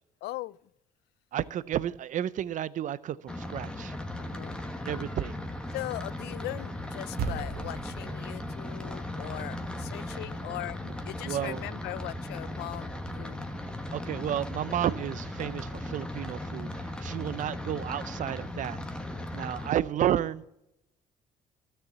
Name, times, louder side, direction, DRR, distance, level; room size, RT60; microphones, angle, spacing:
voice 1, 0.2-0.6 4.2-4.6 5.7-10.8 11.1-13.4, left 17 dB, 75° left, 0.4 m, -39 dB
voice 2, 1.3-3.9 4.8-5.4 9.2-9.3 11.2-11.6 13.9-18.8 19.3-20.4, right 11 dB, 50° right, 0.5 m, -32 dB
sound 1, 3.3-19.7, left 1 dB, 5° left, 1.2 m, -37 dB
sound 2, 7.2-11.7, right 5 dB, 70° right, 1.4 m, -40 dB
13.0 x 6.7 x 8.0 m
cardioid pair, 110°, 17 cm